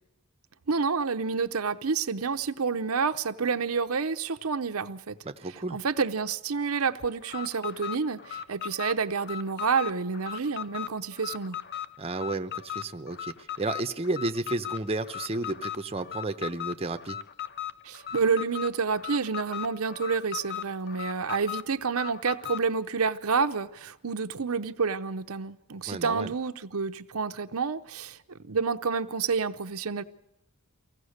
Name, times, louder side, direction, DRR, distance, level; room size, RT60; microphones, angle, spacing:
voice 1, 0.7-5.2 5.5-11.6 17.8-30.0, right 5 dB, 80° right, 0.8 m, -29 dB
voice 2, 5.2-5.8 12.0-17.2 25.9-26.3, right 2 dB, 30° right, 0.8 m, -32 dB
Alarm, 7.2-22.7, left 10 dB, 50° left, 0.7 m, -38 dB
24.0 x 16.5 x 6.5 m
head